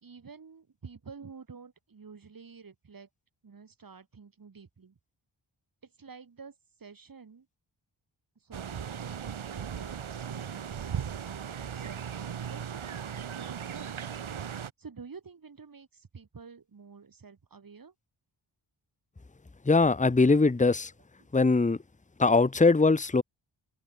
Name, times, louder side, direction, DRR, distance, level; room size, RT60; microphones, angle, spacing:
voice 1, 0.0-3.1 3.4-5.0 5.8-7.5 8.4-14.0 14.8-17.9, right 5 dB, 45° right, 3.5 m, -50 dB
sound 1, 8.5-14.7, right 8 dB, 85° right, 2.4 m, -37 dB
voice 2, 19.6-20.9 21.3-21.8 22.2-23.2, left 3 dB, 15° left, 1.1 m, -22 dB
open air
wide cardioid pair, 180°, 47 cm